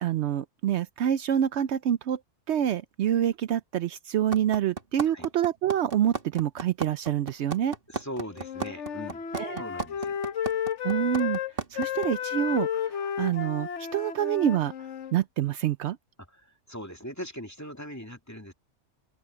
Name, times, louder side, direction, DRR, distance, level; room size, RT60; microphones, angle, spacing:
voice 1, 0.0-2.2 2.5-7.7 9.3-9.6 10.8-11.4 11.7-14.7 15.1-16.0, right 10 dB, 70° right, 0.9 m, -27 dB
sound 1, 4.3-12.1, right 4 dB, 50° right, 2.1 m, -33 dB
voice 2, 7.9-9.2 9.6-10.2 16.3-18.5, equal, 15° left, 2.4 m, -40 dB
Wind instrument woodwind instrument, 8.3-15.2, left 9 dB, 75° left, 1.2 m, -32 dB
omnidirectional pair, 1.2 m